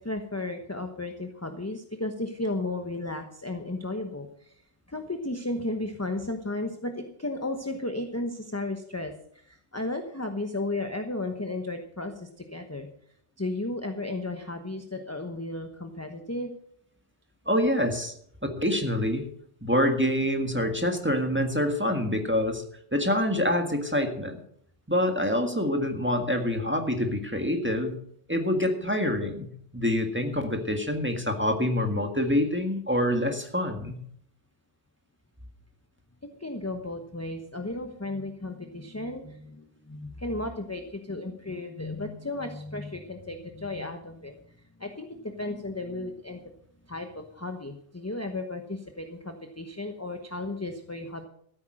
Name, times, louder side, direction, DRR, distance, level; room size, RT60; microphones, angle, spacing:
voice 1, 0.0-4.6 4.9-12.9 13.4-16.5 36.4-44.5 44.8-46.4 46.9-51.2, left 2 dB, 15° left, 5 dB, 1.0 m, -34 dB
voice 2, 17.5-18.1 18.6-19.3 19.6-22.6 22.9-24.4 24.9-28.0 28.3-29.5 29.7-34.0, left 1 dB, 10° right, 4 dB, 1.7 m, -26 dB
14.0 x 8.9 x 6.4 m, 0.66 s
omnidirectional pair, 1.2 m